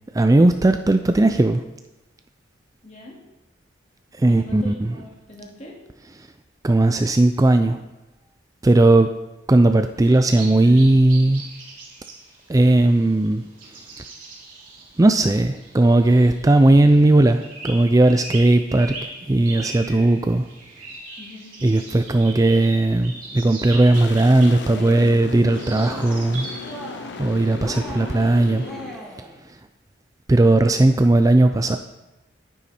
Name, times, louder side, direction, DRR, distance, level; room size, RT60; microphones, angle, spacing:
voice 1, 0.1-1.6 4.2-5.0 6.6-7.8 8.6-9.1 9.5-11.4 12.5-13.4 15.0-18.9 19.3-20.4 21.6-26.5 27.2-28.6 30.3-31.8, right 2 dB, 20° right, 8 dB, 0.4 m, -17 dB
voice 2, 2.8-3.2 4.2-5.8 21.2-21.5, left 1 dB, 35° left, -2 dB, 2.4 m, -41 dB
sound 1, 10.0-28.7, right 3 dB, 45° right, 2.6 m, -40 dB
sound 2, 23.9-29.0, left 4 dB, 60° left, 0.6 m, -36 dB
Cheering, 24.6-25.3 25.6-26.3 26.6-27.3 27.6-29.4, right 1 dB, 5° left, 2.6 m, -39 dB
10.0 x 9.4 x 4.3 m, 0.99 s
head